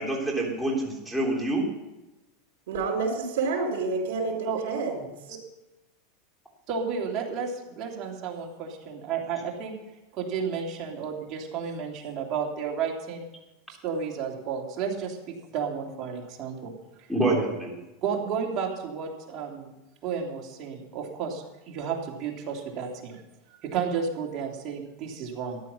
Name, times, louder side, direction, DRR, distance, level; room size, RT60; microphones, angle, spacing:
voice 1, 0.0-1.6 17.1-17.7, right 2 dB, ahead, -3 dB, 3.3 m, -26 dB
voice 2, 2.7-5.1, right 4 dB, 75° right, -1 dB, 4.5 m, -28 dB
voice 3, 6.7-9.7 10.1-13.3 13.8-16.7 18.0-19.7 20.0-23.2 23.5-25.6, right 6 dB, 40° right, -1 dB, 2.9 m, -32 dB
14.0 x 10.5 x 5.6 m, 0.99 s
supercardioid pair, 145°, 0 cm